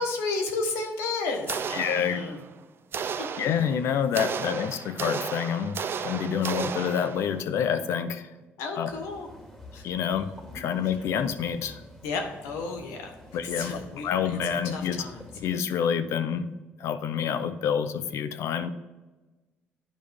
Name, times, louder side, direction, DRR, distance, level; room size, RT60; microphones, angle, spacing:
voice 1, 0.0-2.4 3.0-3.3 8.6-9.3 9.7-9.9 12.0-15.2, left 3 dB, 90° left, 4 dB, 1.3 m, -33 dB
sound 1, 1.5-2.5 2.9-7.4, right 6 dB, 50° right, 0.5 m, -34 dB
voice 2, 1.7-2.2 3.4-8.3 8.8-8.9 9.8-11.8 13.3-15.1 15.3-16.5 16.8-18.7, left 8 dB, 75° left, 11 dB, 0.6 m, -28 dB
sound 2, 8.9-15.5, left 1 dB, 10° left, 2.2 m, -48 dB
9.6 x 5.1 x 3.6 m, 1.2 s
supercardioid pair, 75°, 5 cm